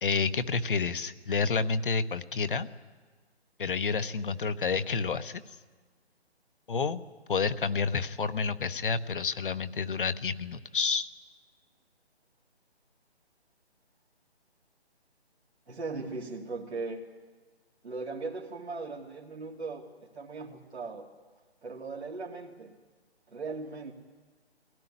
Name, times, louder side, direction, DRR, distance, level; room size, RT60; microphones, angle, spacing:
voice 1, 0.0-2.7 3.6-5.4 6.7-7.0 7.3-11.1, left 5 dB, 50° left, 12 dB, 1.0 m, -29 dB
voice 2, 15.7-17.0 17.8-19.8 20.1-21.1 21.6-22.7 23.3-23.9, right 3 dB, 75° right, -3 dB, 2.6 m, -38 dB
22.0 x 17.0 x 9.9 m, 1.4 s
figure-of-eight pair, 155°, 33 cm